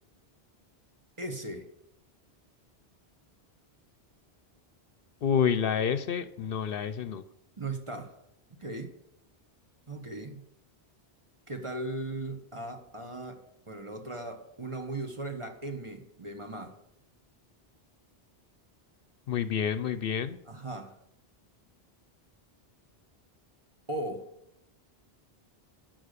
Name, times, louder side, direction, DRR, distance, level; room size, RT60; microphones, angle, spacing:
voice 1, 1.2-1.7 7.6-8.2 8.6-9.0 9.9-10.4 11.5-16.8 20.5-21.0 23.9-24.3, right 2 dB, 30° right, 1.3 m, -38 dB
voice 2, 5.2-7.2 19.3-20.4, left 7 dB, 65° left, 0.8 m, -28 dB
11.5 x 6.1 x 6.7 m
omnidirectional pair, 1.0 m